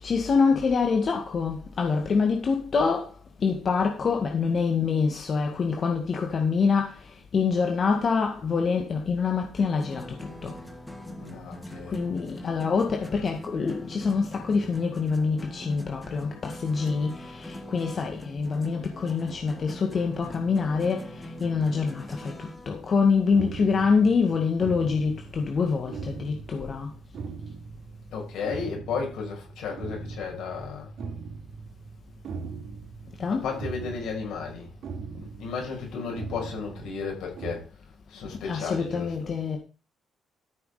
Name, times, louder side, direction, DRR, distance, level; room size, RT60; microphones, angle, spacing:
voice 1, 0.0-3.1 3.4-6.9 7.3-10.0 10.4-10.5 11.9-21.1 21.4-26.9 33.2-33.5 38.4-39.6, left 5 dB, 45° left, 2.0 m, -25 dB
sound 1, 9.5-22.7, equal, 5° left, 2.2 m, -42 dB
voice 2, 11.2-12.0 28.1-30.9 33.3-34.7 35.2-37.6 38.1-39.3, left 5 dB, 80° left, 6.5 m, -34 dB
sound 2, 23.3-37.5, right 5 dB, 60° right, 3.2 m, -40 dB
13.5 x 6.8 x 5.0 m
cardioid pair, 90°, 0 cm